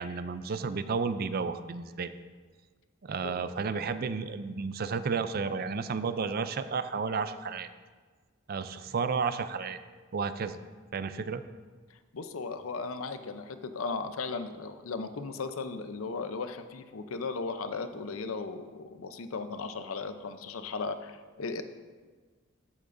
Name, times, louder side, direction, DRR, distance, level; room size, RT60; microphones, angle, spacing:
voice 1, 0.0-2.1 3.0-7.7 8.5-9.8 10.1-10.6 10.9-11.4, right 5 dB, 45° right, 12 dB, 0.4 m, -32 dB
voice 2, 12.1-21.6, left 4 dB, 85° left, 9 dB, 0.6 m, -36 dB
13.5 x 8.4 x 2.6 m, 1.4 s
head